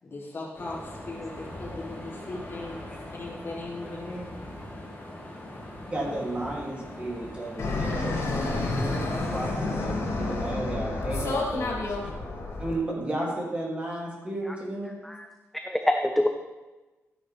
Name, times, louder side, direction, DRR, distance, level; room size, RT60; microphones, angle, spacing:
voice 1, 0.0-4.3, left 2 dB, 45° left, -5 dB, 3.0 m, -38 dB
sound 1, 0.5-10.5, left 1 dB, 30° left, 2.5 m, -41 dB
voice 2, 5.9-8.8 9.1-12.1 12.6-15.0, right 1 dB, 25° right, -4 dB, 2.9 m, -33 dB
Fixed-wing aircraft airplane, 7.6-12.7, left 2 dB, 80° left, 3.0 m, -29 dB
voice 3, 15.5-16.3, left 1 dB, 5° left, 4 dB, 0.5 m, -26 dB
13.0 x 9.9 x 3.5 m, 1.2 s
wide cardioid pair, 155°, 5 cm